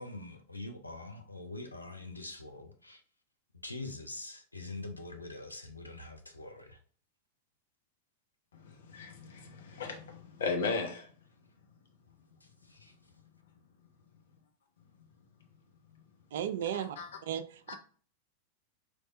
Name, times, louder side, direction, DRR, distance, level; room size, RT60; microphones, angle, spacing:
voice 1, 0.0-3.0 3.6-6.8 12.4-12.9, left 2 dB, 85° left, 0.6 m, -44 dB
voice 2, 8.6-11.1 16.8-17.1 17.7-17.8, left 4 dB, 65° left, 0.9 m, -36 dB
voice 3, 16.3-17.0 17.2-17.8, right 10 dB, 55° right, 0.4 m, -35 dB
4.3 x 3.1 x 2.5 m
figure-of-eight pair, 90°, 0 cm